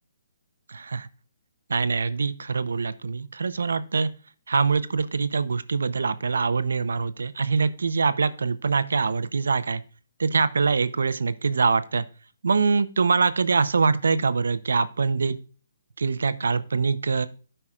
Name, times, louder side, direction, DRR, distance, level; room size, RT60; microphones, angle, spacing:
voice 1, 0.7-1.1 1.7-4.1 4.5-9.8 10.2-12.0 12.4-15.4 16.0-17.3, right 4 dB, 85° right, 14 dB, 0.7 m, -24 dB
13.5 x 5.6 x 2.4 m, 0.37 s
hypercardioid pair, 155°, 0 cm